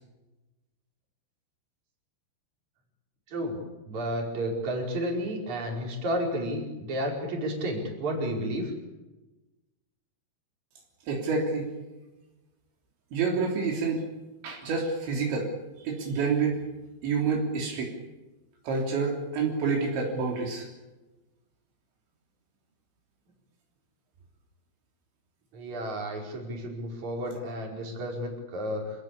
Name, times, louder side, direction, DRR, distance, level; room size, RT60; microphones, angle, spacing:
voice 1, 3.3-3.6 3.9-8.7 25.5-28.8, equal, 40° right, 0 dB, 6.0 m, -32 dB
voice 2, 11.1-11.7 13.1-14.1 14.4-15.5 15.8-16.6 17.0-18.0 18.7-20.7, right 4 dB, 75° right, 0 dB, 5.8 m, -28 dB
27.5 x 18.5 x 8.6 m, 1.1 s
omnidirectional pair, 5.3 m